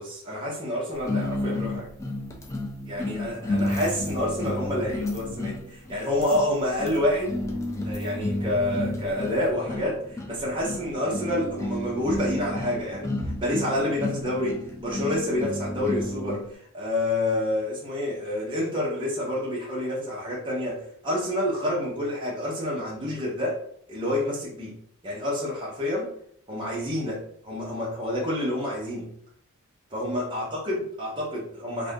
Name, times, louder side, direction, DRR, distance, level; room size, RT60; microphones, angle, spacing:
voice 1, 0.0-1.9 2.9-7.4 7.8-13.1 13.4-23.6 23.9-24.7 25.0-26.1 26.5-29.1 29.9-31.9, left 1 dB, 20° right, -4 dB, 0.7 m, -28 dB
sound 1, 1.0-16.5, left 1 dB, 15° left, 0.3 m, -31 dB
2.6 x 2.5 x 3.5 m, 0.65 s
head